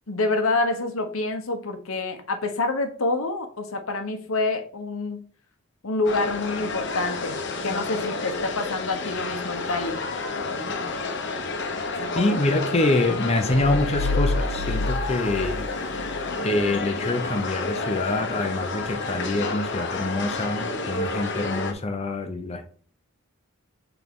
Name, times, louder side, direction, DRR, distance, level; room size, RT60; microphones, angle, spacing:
voice 1, 0.1-5.2 5.8-7.4 7.6-10.0 12.0-12.6, left 2 dB, 85° left, 6 dB, 1.1 m, -27 dB
sound 1, 6.0-21.7, left 3 dB, 60° left, 0.9 m, -30 dB
voice 2, 12.1-15.6 16.4-22.6, left 2 dB, 30° left, 6 dB, 0.7 m, -25 dB
sound 2, 13.5-16.3, left 2 dB, 80° right, 0.8 m, -28 dB
6.0 x 4.5 x 3.7 m, 0.42 s
head